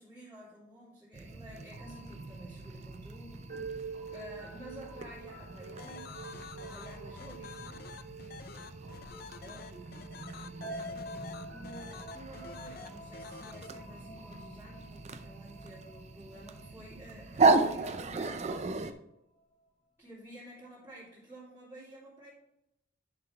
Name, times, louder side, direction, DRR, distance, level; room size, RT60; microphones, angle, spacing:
voice 1, 0.0-7.8 9.4-10.1 11.5-18.9 20.0-22.3, right 1 dB, 15° right, -12 dB, 2.9 m, -51 dB
sound 1, 1.1-18.9, right 3 dB, 35° right, 0.5 m, -36 dB
sound 2, 1.2-18.7, right 2 dB, 60° right, 2.6 m, -48 dB
sound 3, 5.8-13.7, left 6 dB, 50° left, 0.5 m, -48 dB
10.0 x 5.8 x 3.3 m, 0.83 s
head